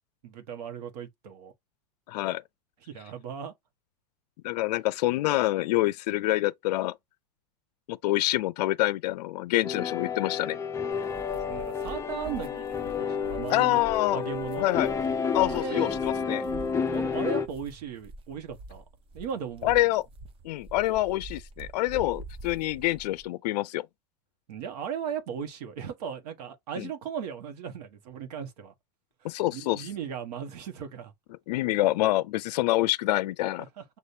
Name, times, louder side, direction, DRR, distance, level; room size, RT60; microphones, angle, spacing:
voice 1, 0.2-1.5 2.8-3.5 11.4-13.8 14.1-14.7 15.4-16.0 16.8-18.8 19.1-19.7 24.5-28.7 29.2-31.1 33.8-33.9, right 7 dB, 70° right, 1.2 m, -37 dB
voice 2, 2.1-2.4 4.4-6.9 7.9-10.6 13.5-14.2 14.6-14.9 15.3-16.4 19.6-20.0 20.4-23.9 26.8-26.9 29.2-29.9 31.5-33.7, left 17 dB, 75° left, 0.4 m, -26 dB
sound 1, 9.6-17.5, left 6 dB, 15° left, 0.4 m, -30 dB
sound 2, 10.9-23.2, right 2 dB, 25° right, 0.7 m, -46 dB
6.5 x 2.5 x 2.7 m
hypercardioid pair, 115°, 21 cm